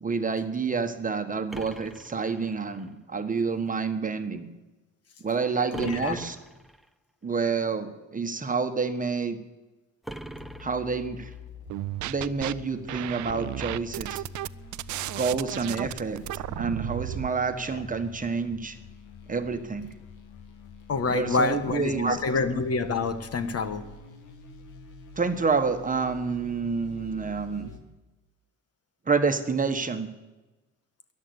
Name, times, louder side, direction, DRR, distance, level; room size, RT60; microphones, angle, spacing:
voice 1, 0.0-4.5 5.2-6.4 7.2-9.4 10.6-11.3 12.1-14.2 15.1-18.8 19.3-19.9 21.1-22.2 25.2-27.7 29.1-30.1, right 4 dB, 25° right, 7 dB, 1.4 m, -28 dB
sound 1, 1.5-2.9 5.7-6.9 10.0-11.4, right 1 dB, ahead, 0.7 m, -42 dB
voice 2, 5.7-6.2 20.9-23.8, left 4 dB, 55° left, 10 dB, 1.4 m, -27 dB
sound 2, 10.2-27.8, left 4 dB, 85° left, 2.1 m, -46 dB
sound 3, 11.7-12.5 12.9-17.3, right 16 dB, 75° right, 0.5 m, -34 dB
13.5 x 11.0 x 8.1 m, 1.1 s
cardioid pair, 90°, 30 cm